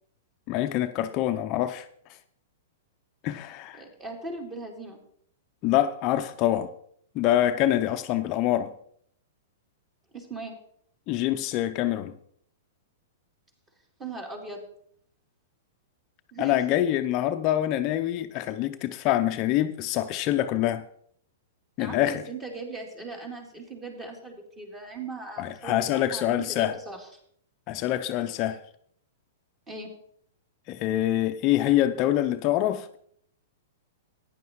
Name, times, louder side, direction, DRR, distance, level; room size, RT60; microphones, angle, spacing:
voice 1, 0.5-1.9 3.2-3.8 5.6-6.7 7.1-8.7 11.1-12.2 16.4-20.8 21.8-22.2 25.4-26.7 27.7-28.6 30.7-33.0, left 13 dB, 40° left, 0.6 m, -25 dB
voice 2, 3.8-5.0 10.1-10.5 14.0-14.6 16.3-16.6 21.8-27.1 29.7-29.9, right 3 dB, 20° right, 3.3 m, -39 dB
14.5 x 10.0 x 3.1 m
hypercardioid pair, 120°, 0 cm